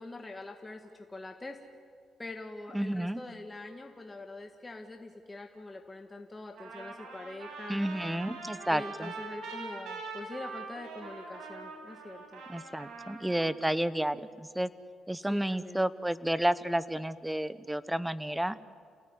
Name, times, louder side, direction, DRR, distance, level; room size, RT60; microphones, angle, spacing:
voice 1, 0.0-1.6 2.2-7.8 8.7-12.4 15.2-15.8, left 2 dB, 20° left, 4 dB, 1.8 m, -44 dB
voice 2, 2.7-3.2 7.7-9.1 12.5-14.7 15.1-18.6, right 1 dB, 5° right, 15 dB, 1.0 m, -31 dB
Trumpet, 6.6-13.6, right 4 dB, 75° right, 6.7 m, -43 dB
29.0 x 19.0 x 9.8 m, 2.2 s
cardioid pair, 90°, 0 cm